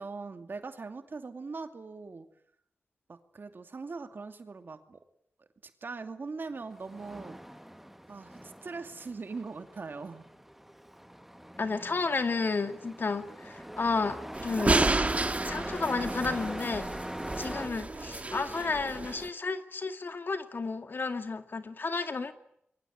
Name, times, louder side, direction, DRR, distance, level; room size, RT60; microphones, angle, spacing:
voice 1, 0.0-2.3 3.1-5.0 5.4-7.4 8.1-10.3, right 4 dB, 60° right, 7 dB, 2.5 m, -41 dB
Truck, 6.6-17.7, equal, 5° right, 1.3 m, -42 dB
voice 2, 11.6-14.8 15.4-16.9 17.4-22.3, left 4 dB, 60° left, 8 dB, 2.2 m, -32 dB
sound 1, 14.3-19.3, right 2 dB, 35° right, 1.7 m, -31 dB
27.0 x 23.0 x 9.4 m, 0.73 s
cardioid pair, 50°, 4 cm